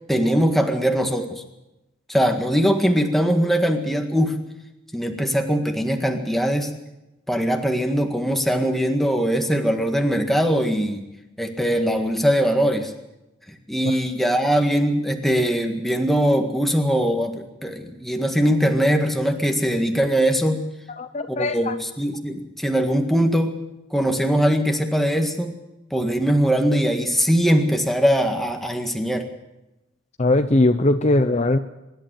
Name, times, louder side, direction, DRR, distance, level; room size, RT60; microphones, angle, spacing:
voice 1, 0.1-1.4 2.1-4.4 4.9-6.7 7.3-11.0 11.4-12.9 13.5-20.6 21.3-23.6 23.9-25.5 25.9-29.3, equal, ahead, 4 dB, 1.8 m, -21 dB
voice 2, 21.0-21.8 30.2-31.6, left 2 dB, 35° left, 8 dB, 0.7 m, -20 dB
24.0 x 12.0 x 9.1 m, 0.96 s
head